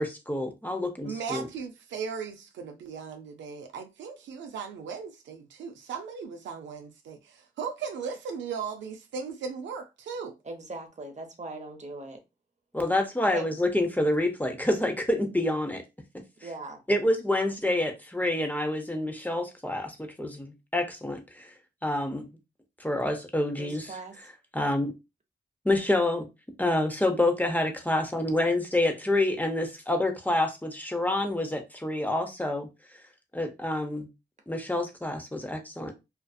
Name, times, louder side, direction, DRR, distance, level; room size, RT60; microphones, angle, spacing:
voice 1, 0.0-1.5 12.7-15.8 16.9-21.5 21.8-22.3 22.8-23.9 24.5-24.9 25.6-26.3 26.6-32.7 33.3-34.1 34.5-35.9, left 1 dB, 10° left, 0.7 m, -27 dB
voice 2, 1.0-10.3, right 6 dB, 85° right, 0.4 m, -37 dB
voice 3, 10.4-12.2 13.2-13.5 16.4-16.8 23.6-24.2, right 3 dB, 40° right, 0.8 m, -39 dB
2.5 x 2.4 x 2.3 m
supercardioid pair, 40°, 19 cm